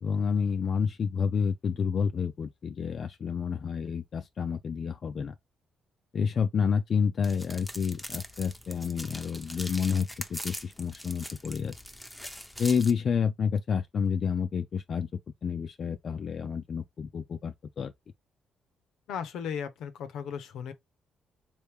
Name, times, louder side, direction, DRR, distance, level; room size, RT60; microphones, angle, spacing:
voice 1, 0.0-5.3 6.1-11.7 12.6-15.1 15.4-17.9, left 6 dB, 50° left, 0.3 m, -29 dB
sound 1, 7.2-12.9, equal, 5° left, 0.6 m, -42 dB
voice 2, 19.1-20.7, left 7 dB, 80° left, 0.7 m, -36 dB
3.3 x 2.5 x 3.4 m
cardioid pair, 90°, 0 cm